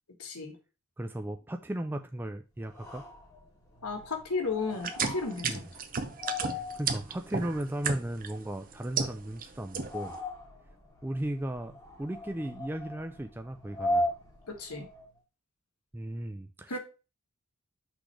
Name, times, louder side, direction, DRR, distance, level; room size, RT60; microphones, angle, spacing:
voice 1, 0.2-0.5 3.8-5.6 14.5-14.9 16.7-16.8, left 4 dB, 90° left, 3 dB, 1.7 m, -34 dB
voice 2, 1.0-3.1 5.4-5.6 6.4-10.2 11.0-14.1 15.9-16.8, right 1 dB, 10° right, 6 dB, 0.3 m, -36 dB
sound 1, 2.6-15.2, left 1 dB, 15° left, 1.7 m, -39 dB
sound 2, 4.8-8.3 8.7-9.4 9.7-10.1, right 5 dB, 40° right, 0.7 m, -32 dB
6.2 x 3.3 x 5.9 m, 0.31 s
head